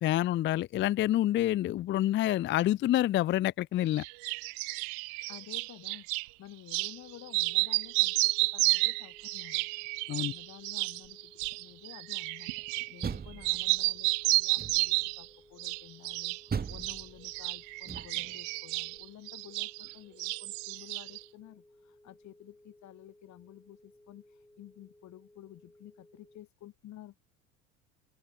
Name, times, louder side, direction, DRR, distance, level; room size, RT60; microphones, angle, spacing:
voice 1, 0.0-4.0 10.1-10.3, left 13 dB, 30° left, 0.5 m, -27 dB
sound 1, 4.0-6.3 6.7-7.0 7.3-13.2 13.4-15.3 15.6-16.4 16.7-19.9 20.2-21.2, right 40 dB or more, 55° right, 0.8 m, -31 dB
voice 2, 5.3-11.3 11.6-12.5 12.9-27.2, left 14 dB, 45° left, 2.4 m, -52 dB
sound 2, 6.8-26.4, left 1 dB, 5° left, 3.8 m, -61 dB
Door, 12.8-14.0 14.6-15.1 16.5-18.4, right 6 dB, 25° right, 1.8 m, -39 dB
open air
figure-of-eight pair, 65°, 39 cm